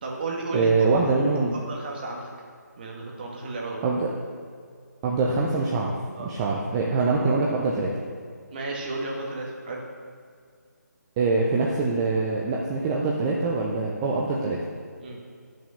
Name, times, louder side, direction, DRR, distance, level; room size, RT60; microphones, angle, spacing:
voice 1, 0.0-0.7 1.0-1.1 1.5-2.3 2.8-3.8 6.2-6.3 8.5-9.8 15.0-15.2, right 2 dB, 30° right, -1 dB, 1.8 m, -33 dB
voice 2, 0.5-1.6 3.8-4.1 5.0-7.9 11.2-14.6, right 3 dB, 15° right, -3 dB, 0.6 m, -24 dB
10.5 x 6.3 x 6.5 m, 2.1 s
figure-of-eight pair, 160°, 10 cm